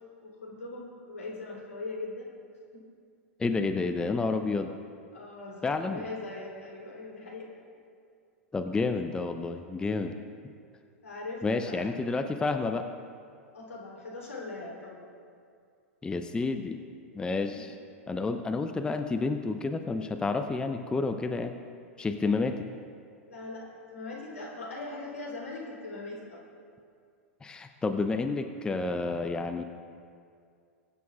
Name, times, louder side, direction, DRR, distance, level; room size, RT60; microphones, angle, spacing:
voice 1, 0.2-2.3 2.7-2.8 5.1-7.5 11.0-11.8 13.5-15.0 17.3-17.7 22.3-22.4 23.3-26.4, left 2 dB, 80° left, -3 dB, 3.3 m, -40 dB
voice 2, 3.4-4.7 5.6-6.1 8.5-10.2 11.4-12.9 16.0-16.8 17.1-17.7 18.1-21.5 22.0-22.6 27.4-29.6, left 3 dB, 10° left, 7 dB, 0.6 m, -30 dB
22.0 x 9.4 x 2.4 m, 2.3 s
figure-of-eight pair, 95°, 8 cm